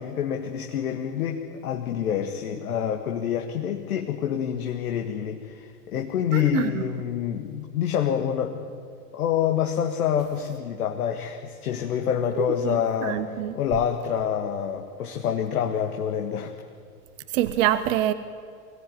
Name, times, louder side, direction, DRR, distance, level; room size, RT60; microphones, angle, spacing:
voice 1, 0.0-8.7 9.1-13.2 13.5-16.5, left 9 dB, 65° left, 1.8 m, -27 dB
voice 2, 6.3-6.8 12.4-12.8 13.0-13.5 17.3-18.1, right 13 dB, 50° right, 1.2 m, -25 dB
23.5 x 17.5 x 9.4 m
figure-of-eight pair, 85°, 48 cm